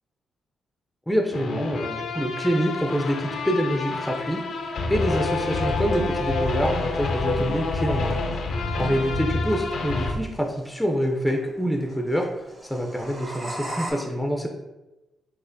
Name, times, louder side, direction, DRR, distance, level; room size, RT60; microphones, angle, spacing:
voice 1, 1.1-8.1 8.8-12.3 12.6-14.5, equal, 5° left, 2 dB, 0.4 m, -26 dB
sound 1, 1.3-10.1, left 3 dB, 70° left, 0.4 m, -28 dB
sound 2, 2.6-13.9, right 1 dB, 35° right, 1.4 m, -42 dB
4.0 x 2.4 x 2.6 m, 1.0 s
cardioid pair, 70°, 0 cm